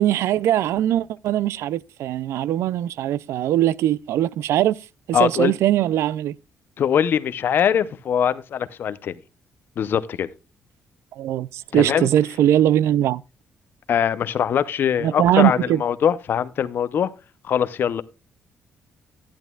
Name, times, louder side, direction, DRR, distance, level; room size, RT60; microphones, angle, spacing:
voice 1, 0.0-4.8 5.1-6.4 11.2-13.2 15.0-15.8, right 12 dB, 80° right, 0.4 m, -21 dB
voice 2, 5.1-5.5 6.8-9.1 9.8-10.3 11.7-12.1 13.9-17.1 17.5-18.0, left 8 dB, 50° left, 0.6 m, -22 dB
11.0 x 10.5 x 2.3 m
cardioid pair, 150°, 5 cm